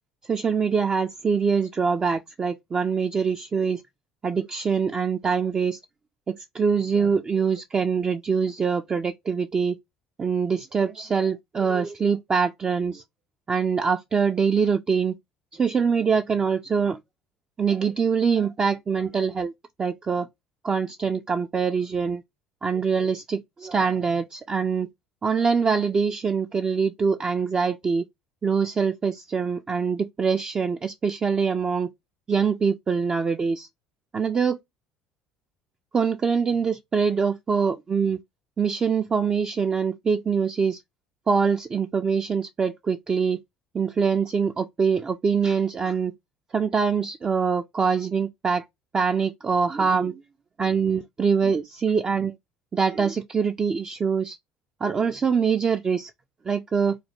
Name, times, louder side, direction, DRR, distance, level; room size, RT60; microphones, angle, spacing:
voice 1, 0.3-3.8 4.2-5.8 6.3-9.8 10.2-13.0 13.5-15.1 15.5-17.0 17.6-19.5 19.8-20.3 20.6-22.2 22.6-24.9 25.2-28.0 28.4-31.9 32.3-33.7 34.1-34.6 35.9-38.2 38.6-40.8 41.3-43.4 43.7-46.1 46.5-48.6 48.9-50.2 50.6-52.3 52.7-54.4 54.8-56.1 56.5-57.0, right 6 dB, 30° right, 0.3 m, -24 dB
3.2 x 2.2 x 2.9 m
hypercardioid pair, 65°, 3 cm